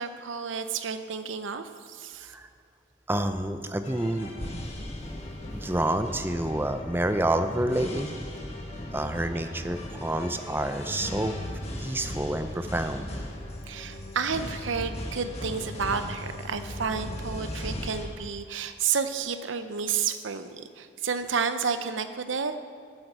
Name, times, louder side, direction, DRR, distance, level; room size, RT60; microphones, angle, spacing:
voice 1, 0.0-2.3 13.7-22.6, right 6 dB, 85° right, 10 dB, 0.7 m, -31 dB
voice 2, 3.1-4.3 5.5-8.1 8.9-11.3 11.8-13.1, right 1 dB, 10° right, 8 dB, 0.5 m, -28 dB
sound 1, 3.8-18.1, left 1 dB, 35° left, 1.3 m, -37 dB
9.3 x 7.9 x 7.4 m, 2.2 s
head